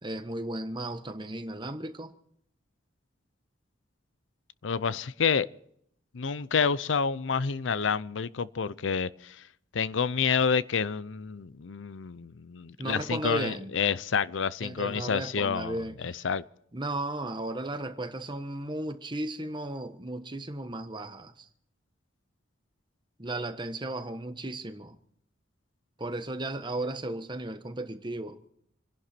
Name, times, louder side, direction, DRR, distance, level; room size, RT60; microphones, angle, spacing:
voice 1, 0.0-2.1 12.8-13.7 14.6-16.3 16.7-21.5 23.2-24.9 26.0-28.4, right 2 dB, 25° right, 1.2 m, -35 dB
voice 2, 4.6-5.5 6.1-9.4 9.7-16.4, left 6 dB, 80° left, 0.6 m, -29 dB
27.5 x 11.0 x 4.4 m
head